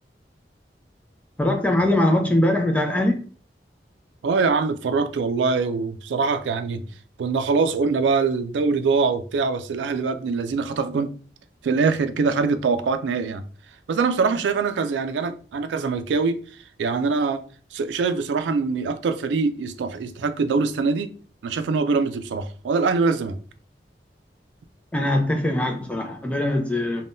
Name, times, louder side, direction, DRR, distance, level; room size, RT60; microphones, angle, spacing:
voice 1, 1.4-3.2 24.9-27.0, left 1 dB, 10° left, 0.4 m, -22 dB
voice 2, 4.2-6.9 7.2-11.1 11.6-13.4 13.9-16.4 16.8-17.4 17.7-21.1 21.4-23.4, right 4 dB, 90° right, 0.4 m, -23 dB
3.5 x 2.2 x 2.5 m
head